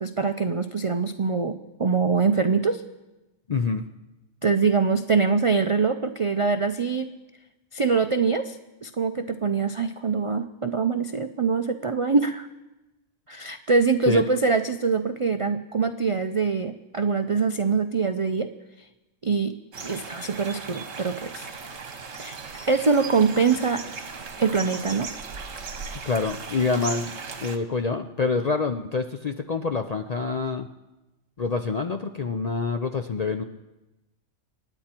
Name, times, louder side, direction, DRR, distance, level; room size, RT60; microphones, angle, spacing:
voice 1, 0.0-2.8 4.4-7.1 7.7-8.6 8.8-12.5 13.3-18.5 18.8-18.9 19.2-19.6 19.8-21.5 21.9-22.4 22.7-23.8 24.4-25.1, right 5 dB, 55° right, 8 dB, 0.3 m, -24 dB
voice 2, 3.5-3.9 14.1-14.2 26.1-27.1 27.4-30.7 31.4-33.4, left 4 dB, 50° left, 7 dB, 0.4 m, -26 dB
sound 1, 19.7-27.6, right 4 dB, 75° right, 1.7 m, -37 dB
26.5 x 9.9 x 4.4 m, 1.0 s
omnidirectional pair, 1.3 m